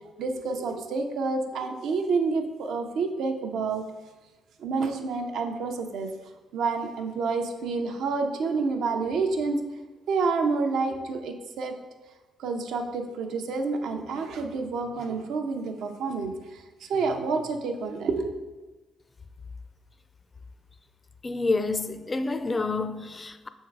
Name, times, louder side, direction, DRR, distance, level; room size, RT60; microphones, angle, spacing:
voice 1, 0.2-3.8 4.6-6.1 6.5-9.6 10.1-11.8 12.4-18.3, right 4 dB, 75° right, 0.7 m, -28 dB
voice 2, 21.2-23.5, left 3 dB, 25° left, 0.4 m, -28 dB
6.5 x 3.7 x 4.6 m
cardioid pair, 90°, 0 cm